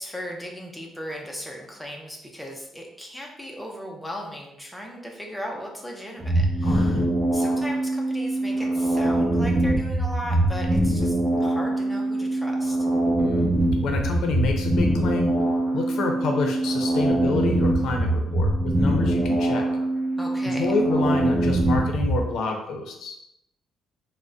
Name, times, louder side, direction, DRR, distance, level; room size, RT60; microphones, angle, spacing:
voice 1, 0.0-7.0 7.3-12.8 20.1-20.7, equal, ahead, -1 dB, 0.5 m, -37 dB
sound 1, 6.2-22.2, right 1 dB, 25° right, 0.8 m, -23 dB
voice 2, 6.6-7.1 13.2-15.4 15.7-19.7 20.4-23.1, left 3 dB, 70° left, 2 dB, 0.5 m, -28 dB
3.4 x 2.0 x 2.6 m, 0.81 s
cardioid pair, 135°, 0 cm